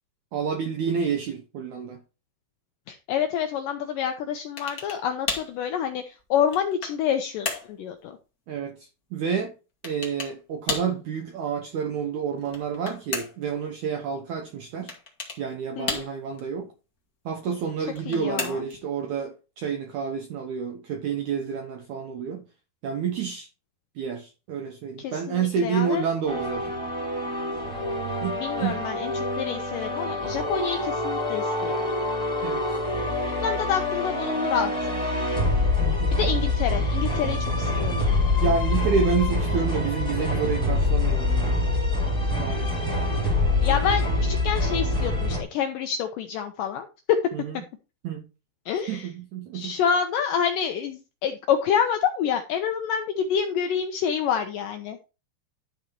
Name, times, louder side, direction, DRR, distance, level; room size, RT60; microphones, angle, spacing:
voice 1, 0.3-2.0 8.5-9.5 9.8-14.9 15.4-16.7 17.2-22.5 22.8-23.5 23.9-26.8 28.2-28.8 32.4-32.8 35.8-36.2 38.4-41.6 42.4-42.9 47.3-47.6 48.0-48.3 48.9-49.8, right 6 dB, 80° right, 1.7 m, -29 dB
voice 2, 2.9-8.1 15.8-16.0 18.1-18.6 25.0-26.0 28.4-31.8 33.4-34.7 36.2-37.9 43.6-46.9 48.7-49.1 49.5-55.0, left 8 dB, 80° left, 1.9 m, -27 dB
sound 1, 4.6-5.0 5.3-5.6 6.2-7.0 7.4-7.7 9.8-10.4 10.7-11.0 12.4-13.5 14.9-15.4 15.9-16.4 17.8-18.8, left 4 dB, 50° left, 1.0 m, -33 dB
sound 2, 26.3-45.4, left 2 dB, ahead, 2.2 m, -25 dB
12.0 x 4.0 x 4.5 m
omnidirectional pair, 4.6 m